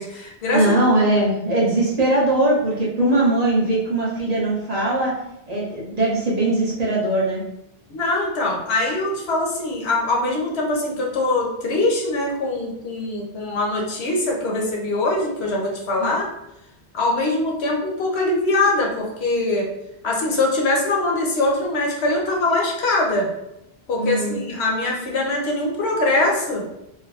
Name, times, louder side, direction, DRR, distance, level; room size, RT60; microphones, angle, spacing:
voice 1, 0.0-0.7 7.9-16.3 16.9-19.7 20.0-23.3 23.9-26.6, left 2 dB, 75° left, -1 dB, 1.0 m, -22 dB
voice 2, 0.5-5.2 5.5-7.4 16.0-16.1 24.0-24.4, right 1 dB, 40° right, -5 dB, 0.8 m, -20 dB
4.4 x 2.0 x 2.3 m, 0.84 s
omnidirectional pair, 1.1 m